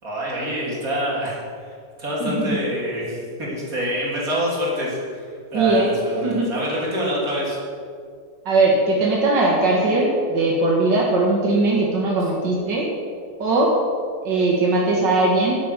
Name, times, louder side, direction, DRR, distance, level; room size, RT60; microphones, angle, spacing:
voice 1, 0.0-1.7 2.0-5.3 5.5-7.6, equal, 50° right, -5 dB, 3.9 m, -26 dB
voice 2, 2.2-2.6 5.5-6.5 8.5-12.9 13.4-13.7 14.2-15.5, right 2 dB, 85° right, -3 dB, 2.4 m, -20 dB
12.0 x 8.1 x 8.3 m, 2.1 s
omnidirectional pair, 1.9 m